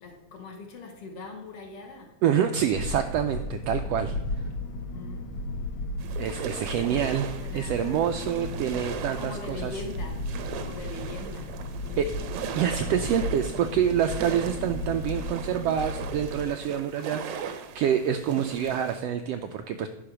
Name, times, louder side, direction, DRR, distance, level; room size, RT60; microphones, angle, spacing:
voice 1, 0.0-2.1 4.9-5.2 6.6-8.1 9.2-10.2 10.5-11.5 11.8-12.4, left 3 dB, 55° left, 2 dB, 2.1 m, -42 dB
voice 2, 2.2-4.2 6.2-7.3 7.5-9.7 12.0-12.1 12.5-19.9, right 9 dB, 90° right, 7 dB, 1.4 m, -27 dB
sound 1, 2.7-16.4, left 2 dB, 75° left, 2.3 m, -35 dB
sound 2, 6.0-19.0, right 8 dB, 75° right, 1.4 m, -39 dB
10.0 x 5.6 x 5.9 m, 1.0 s
omnidirectional pair, 3.4 m